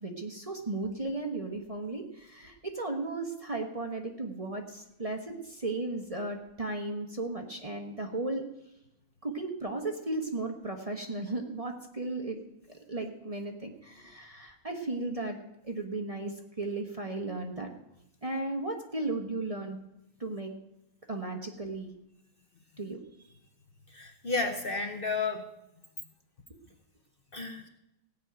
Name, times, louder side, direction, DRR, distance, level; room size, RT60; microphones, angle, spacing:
voice 1, 0.0-8.4 9.2-12.4 12.7-15.4 15.6-17.7 18.2-19.8 20.2-20.5 21.1-21.9 22.8-23.0, right 2 dB, 25° right, 3 dB, 1.1 m, -35 dB
voice 2, 23.9-25.5 27.3-27.7, left 4 dB, 45° left, 5 dB, 1.0 m, -32 dB
16.0 x 5.4 x 8.9 m, 0.87 s
omnidirectional pair, 1.5 m